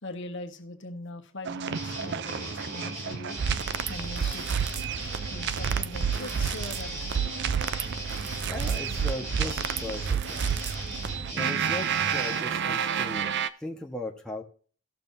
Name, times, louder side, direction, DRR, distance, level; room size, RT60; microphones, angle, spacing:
voice 1, 0.0-3.4 3.9-7.3, left 2 dB, 60° left, 5 dB, 1.3 m, -42 dB
sound 1, 1.5-13.5, right 7 dB, 55° right, 0.5 m, -30 dB
sound 2, 1.7-12.4, right 1 dB, 35° right, 2.8 m, -38 dB
voice 2, 8.2-10.6 11.3-13.3 13.6-14.4, left 2 dB, 5° left, -1 dB, 1.2 m, -38 dB
16.5 x 6.6 x 2.7 m, 0.42 s
head